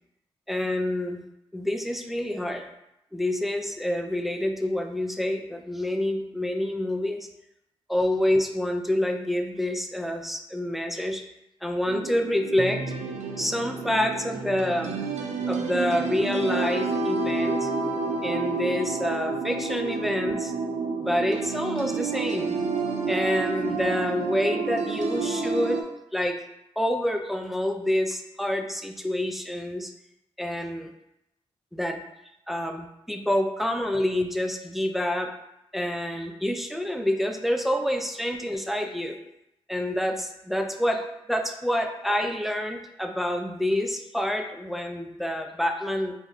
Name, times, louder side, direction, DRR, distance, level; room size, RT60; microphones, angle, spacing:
voice 1, 0.5-1.2 1.5-2.6 3.1-7.3 7.9-11.2 11.6-12.8 13.4-15.0 15.5-17.7 18.2-20.5 21.0-22.6 23.1-25.8 26.1-26.4 26.8-29.9 30.4-30.9 31.7-32.0 32.5-35.3 35.7-39.2 39.7-41.0 41.3-46.1, left 1 dB, ahead, 5 dB, 0.3 m, -27 dB
sound 1, 11.9-25.8, right 4 dB, 70° right, 0.4 m, -29 dB
2.2 x 2.0 x 3.6 m, 0.85 s
supercardioid pair, 45°, 12 cm